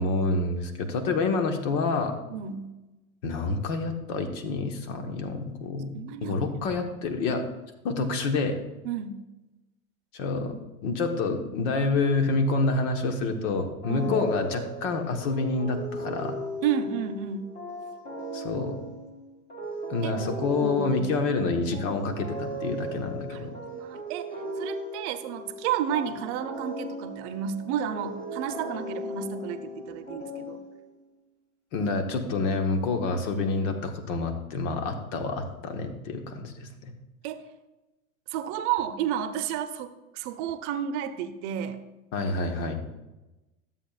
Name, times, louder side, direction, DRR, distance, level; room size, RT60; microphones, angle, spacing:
voice 1, 0.0-2.1 3.2-5.9 6.2-7.4 7.8-8.6 10.1-10.6 10.8-16.4 18.3-18.8 19.9-23.5 31.7-36.9 42.1-42.8, left 3 dB, 60° left, 6 dB, 1.4 m, -28 dB
voice 2, 2.3-2.7 5.9-6.7 8.8-9.2 13.9-14.2 16.6-17.5 20.0-20.1 20.6-21.0 23.3-30.6 37.2-37.4 38.3-41.8, right 9 dB, 55° right, 9 dB, 0.8 m, -32 dB
sound 1, 13.8-31.0, equal, 20° left, 2.3 m, -37 dB
12.5 x 7.4 x 2.4 m, 1.0 s
hypercardioid pair, 100°, 43 cm